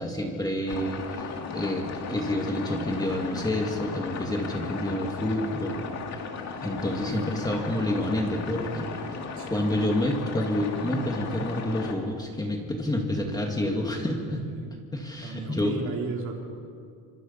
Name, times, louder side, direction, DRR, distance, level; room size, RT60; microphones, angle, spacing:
voice 1, 0.0-5.8 6.6-8.9 9.5-14.4 14.9-15.7, left 1 dB, 10° left, 1 dB, 2.1 m, -28 dB
sound 1, 0.7-12.0, left 5 dB, 45° left, 2.5 m, -36 dB
voice 2, 6.8-7.4 9.3-9.8 14.4-14.7 15.2-16.4, right 5 dB, 45° right, 1 dB, 3.5 m, -36 dB
27.5 x 25.5 x 5.7 m, 2.3 s
cardioid pair, 170°, 38 cm